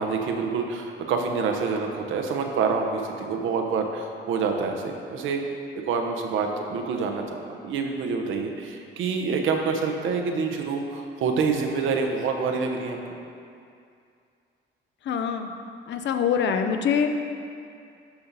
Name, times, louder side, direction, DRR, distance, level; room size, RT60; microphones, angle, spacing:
voice 1, 0.0-5.4 5.9-13.0, right 5 dB, 80° right, 3 dB, 0.8 m, -27 dB
voice 2, 15.1-15.5 15.9-17.1, left 7 dB, 65° left, 6 dB, 0.6 m, -24 dB
12.0 x 4.0 x 4.0 m, 2.5 s
cardioid pair, 90°, 20 cm